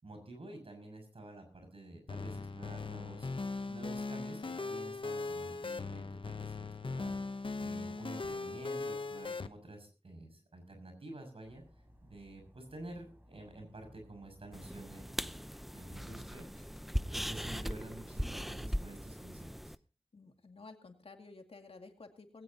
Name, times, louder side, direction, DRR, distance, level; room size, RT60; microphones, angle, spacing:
voice 1, 0.0-3.3 3.7-7.2 7.6-11.6 12.1-16.7 17.0-19.7, right 2 dB, 80° right, 5 dB, 6.2 m, -49 dB
sound 1, 2.1-9.5, left 3 dB, 65° left, 0.9 m, -39 dB
Dog, 11.4-16.8, equal, 20° right, 4.6 m, -61 dB
sound 2, 14.5-19.8, equal, ahead, 0.6 m, -39 dB
voice 2, 20.1-22.4, left 3 dB, 90° left, 4 dB, 2.2 m, -53 dB
20.0 x 17.0 x 2.8 m, 0.34 s
wide cardioid pair, 60°, 10 cm